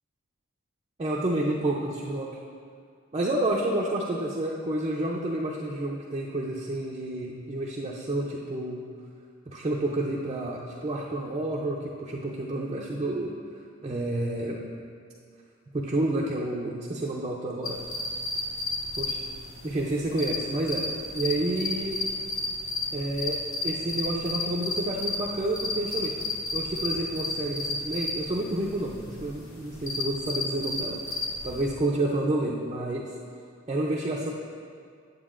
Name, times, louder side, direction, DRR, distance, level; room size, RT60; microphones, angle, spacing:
voice 1, 1.0-2.3 3.1-8.8 9.5-13.3 13.8-14.6 15.7-17.8 19.0-19.2 19.6-20.9 21.1-22.0 22.9-26.1 26.5-31.2 31.4-33.1 33.7-34.3, right 1 dB, 30° right, -4 dB, 0.5 m, -29 dB
sound 1, 17.6-31.7, left 2 dB, 75° left, 1.1 m, -32 dB
9.0 x 7.9 x 2.5 m, 2.2 s
head